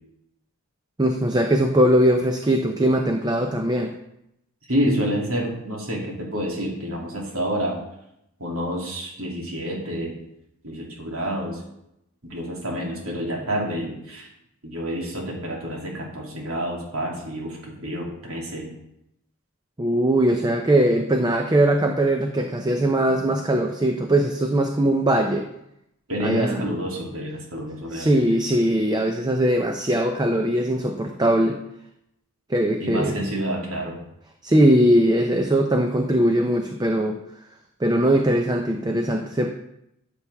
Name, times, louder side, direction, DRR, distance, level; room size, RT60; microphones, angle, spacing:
voice 1, 1.0-3.9 19.8-25.5 26.2-26.6 27.9-31.6 32.5-33.2 34.4-37.2 37.8-39.5, right 1 dB, 20° right, 4 dB, 0.6 m, -20 dB
voice 2, 4.7-7.8 8.4-10.1 10.6-11.6 12.2-14.3 14.6-18.7 26.1-28.3 32.8-34.0, equal, 85° right, -2 dB, 2.8 m, -28 dB
13.0 x 7.0 x 3.5 m, 0.82 s
head